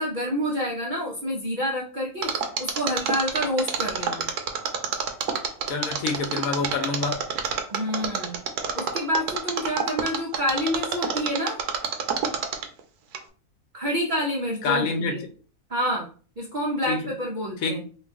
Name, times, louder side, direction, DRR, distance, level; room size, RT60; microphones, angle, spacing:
voice 1, 0.0-4.3 7.7-8.4 8.7-11.6 13.7-15.2 15.7-16.1 16.4-17.8, equal, 60° right, -2 dB, 0.5 m, -28 dB
Mechanisms, 2.2-12.8 13.1-13.2, right 7 dB, 80° right, 1.1 m, -27 dB
voice 2, 5.7-7.2 14.6-15.2 16.9-17.0 17.6-17.8, left 4 dB, 70° left, 4 dB, 1.1 m, -26 dB
3.0 x 2.4 x 3.4 m, 0.40 s
omnidirectional pair, 1.6 m